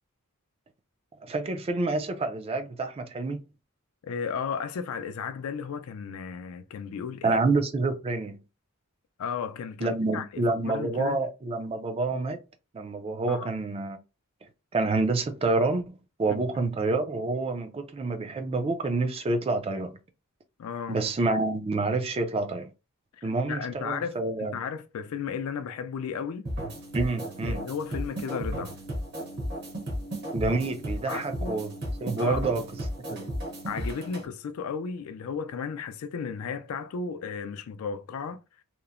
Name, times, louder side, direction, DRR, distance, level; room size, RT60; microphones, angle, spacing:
voice 1, 1.3-3.4 7.2-8.4 9.8-12.4 12.7-14.0 14.7-20.0 20.9-22.7 23.2-24.6 26.9-27.6 30.3-31.7 32.0-32.6 33.1-33.3, right 3 dB, 25° right, 0.3 m, -28 dB
voice 2, 4.0-7.4 9.2-11.2 13.3-13.6 16.3-16.4 20.6-21.0 23.2-26.5 27.4-28.8 31.1-31.7 32.2-32.5 33.7-38.4, left 6 dB, 70° left, 0.3 m, -34 dB
sound 1, 26.4-34.2, equal, 50° right, 0.8 m, -34 dB
2.9 x 2.0 x 2.4 m
head